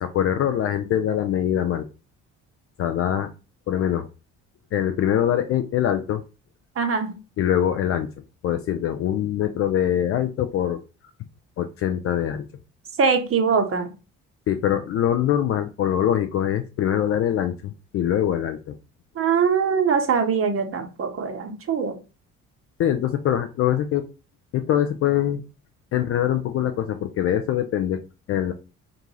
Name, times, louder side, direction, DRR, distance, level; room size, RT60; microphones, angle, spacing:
voice 1, 0.0-1.9 2.8-3.3 3.7-4.1 4.7-6.2 7.4-8.1 8.4-10.8 11.6-12.5 14.5-18.8 22.8-24.1 24.5-25.4 25.9-28.0 28.3-28.5, left 10 dB, 35° left, 9 dB, 0.4 m, -23 dB
voice 2, 6.8-7.2 13.0-13.9 19.2-22.0, right 6 dB, 35° right, 6 dB, 0.9 m, -22 dB
4.4 x 2.5 x 3.0 m, 0.31 s
figure-of-eight pair, 50°, 41 cm